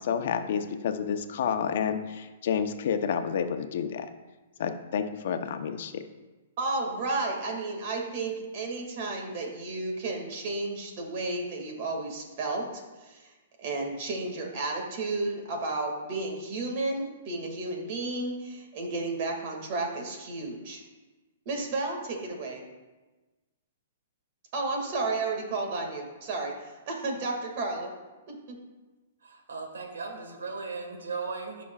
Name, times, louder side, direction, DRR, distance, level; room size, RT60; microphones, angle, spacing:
voice 1, 0.0-4.1 4.6-6.0, left 7 dB, 60° left, 8 dB, 0.8 m, -29 dB
voice 2, 6.6-13.3 13.6-20.8 21.5-22.6 24.5-27.9 28.3-28.6, right 2 dB, 50° right, 1 dB, 2.1 m, -32 dB
voice 3, 29.2-31.6, right 4 dB, 90° right, 3 dB, 1.5 m, -37 dB
14.0 x 6.1 x 2.4 m, 1.2 s
hypercardioid pair, 140°, 0 cm